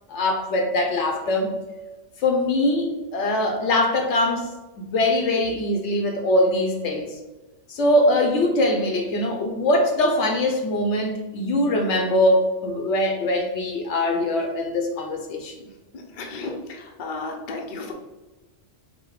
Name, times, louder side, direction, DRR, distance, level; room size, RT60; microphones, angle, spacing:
voice 1, 0.1-1.5 2.2-4.5 4.8-7.1 7.7-15.6, left 1 dB, 70° left, 4 dB, 1.0 m, -22 dB
voice 2, 15.9-17.9, left 3 dB, 50° left, 2 dB, 0.7 m, -34 dB
5.3 x 2.1 x 4.6 m, 1.1 s
omnidirectional pair, 1.3 m